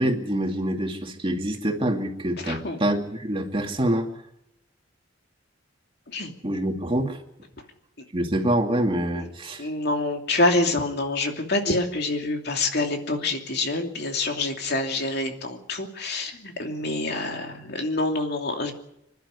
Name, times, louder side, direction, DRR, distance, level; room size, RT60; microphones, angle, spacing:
voice 1, 0.0-4.1 6.4-7.2 8.1-9.7, right 1 dB, 30° right, 3 dB, 2.5 m, -26 dB
voice 2, 2.4-2.8 6.1-6.3 9.1-9.3 9.6-18.7, left 2 dB, 60° left, 3 dB, 2.8 m, -26 dB
26.0 x 12.0 x 9.9 m, 0.81 s
head